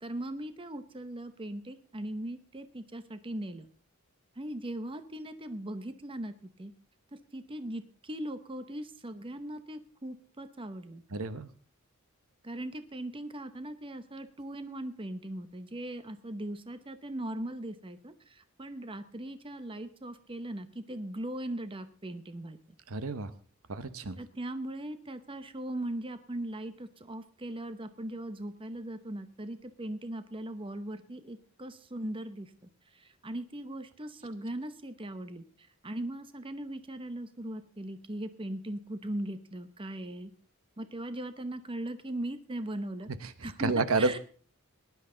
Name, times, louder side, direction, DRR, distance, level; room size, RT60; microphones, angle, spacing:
voice 1, 0.0-3.7 4.4-6.7 7.1-11.0 12.4-22.6 24.2-32.5 32.9-40.3 40.8-43.1 43.4-44.2, right 1 dB, 25° right, 10 dB, 0.8 m, -39 dB
voice 2, 11.1-11.5 22.9-23.3 23.7-24.2 43.4-44.2, right 3 dB, 75° right, 13 dB, 0.9 m, -30 dB
18.5 x 11.0 x 3.8 m, 0.41 s
head